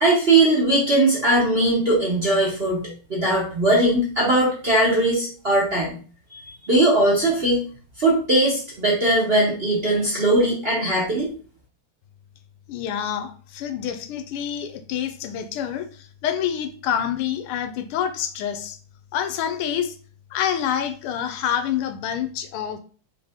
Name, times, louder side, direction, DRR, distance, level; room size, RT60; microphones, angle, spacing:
voice 1, 0.0-6.0 6.3-6.4 6.7-7.6 8.0-11.3, right 2 dB, 40° right, -5 dB, 1.0 m, -20 dB
voice 2, 12.7-18.8 19.1-19.9 20.3-22.8, left 9 dB, 85° left, 8 dB, 1.5 m, -27 dB
4.0 x 3.4 x 3.5 m, 0.40 s
omnidirectional pair, 2.4 m